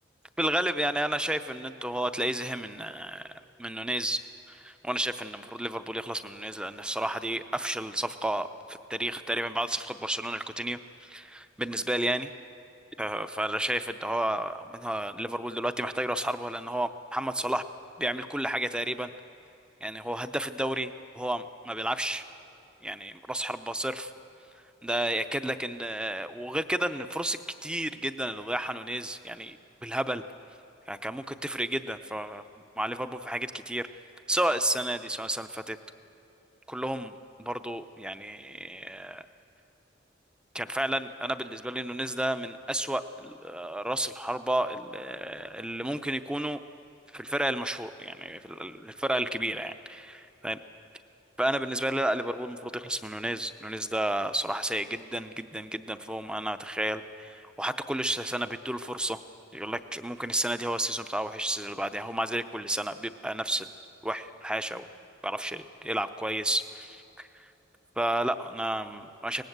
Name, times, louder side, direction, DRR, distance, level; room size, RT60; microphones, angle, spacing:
voice 1, 0.4-3.3 3.6-4.2 4.5-12.3 13.0-17.6 18.0-19.1 19.8-22.2 22.8-24.1 24.8-30.2 30.9-32.4 32.8-33.9 34.3-35.8 36.7-39.2 40.5-46.6 47.1-50.6 51.4-59.2 59.5-63.7 64.0-64.9 65.2-67.5 68.0-69.4, right 1 dB, 5° right, 11 dB, 0.6 m, -31 dB
23.5 x 19.0 x 8.0 m, 2.8 s
head